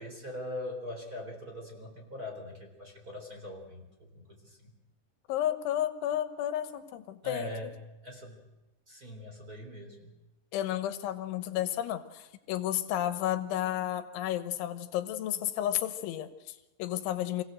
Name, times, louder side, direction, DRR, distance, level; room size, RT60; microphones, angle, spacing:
voice 1, 0.0-4.7 7.2-7.7 8.0-8.4 8.9-10.1, left 1 dB, 20° right, 2 dB, 4.0 m, -41 dB
voice 2, 5.3-7.5 10.5-17.4, left 12 dB, 85° left, 10 dB, 3.5 m, -32 dB
26.5 x 17.0 x 7.8 m, 1.0 s
omnidirectional pair, 5.4 m